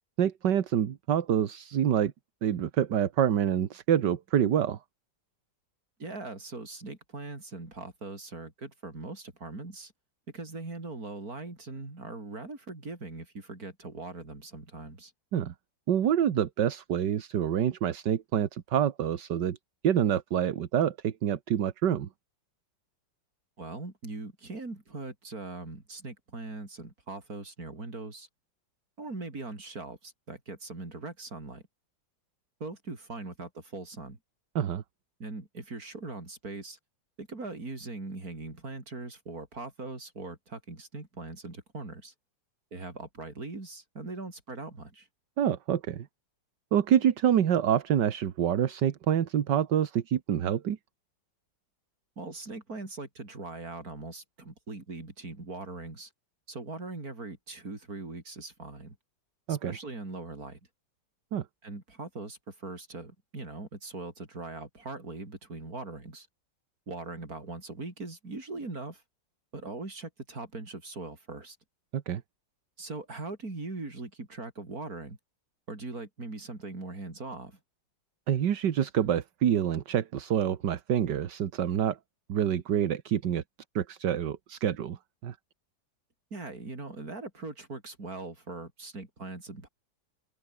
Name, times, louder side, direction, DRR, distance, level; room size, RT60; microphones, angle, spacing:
voice 1, 0.2-2.1 2.4-4.8 15.3-15.5 15.9-19.6 19.8-22.1 34.6-34.8 45.4-46.1 46.7-50.8 59.5-59.7 61.3-61.4 71.9-72.2 78.3-82.0 82.3-83.4 83.8-85.0 85.2-85.4, right 9 dB, 65° right, 1.8 m, -27 dB
voice 2, 6.0-9.9 10.3-15.1 23.6-28.3 29.0-31.6 32.6-34.2 35.2-36.8 37.2-42.1 42.7-45.1 52.2-56.1 56.5-58.9 59.5-60.6 61.6-66.3 66.9-69.0 69.5-71.6 72.8-75.2 75.7-77.6 86.3-89.7, right 3 dB, 50° right, 5.1 m, -41 dB
omnidirectional pair, 2.0 m